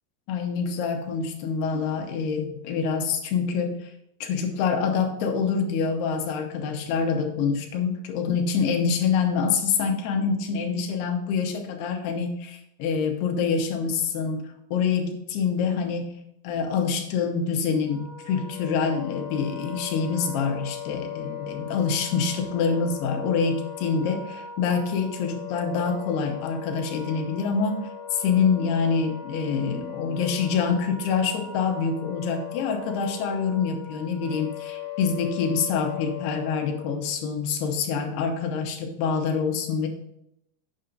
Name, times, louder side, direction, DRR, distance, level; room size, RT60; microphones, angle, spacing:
voice 1, 0.3-3.9 4.2-16.1 16.4-39.9, left 5 dB, 75° left, 3 dB, 2.9 m, -26 dB
Wind instrument woodwind instrument, 17.8-36.9, left 8 dB, 45° left, 2.9 m, -38 dB
8.9 x 6.8 x 3.9 m, 0.79 s
omnidirectional pair, 4.9 m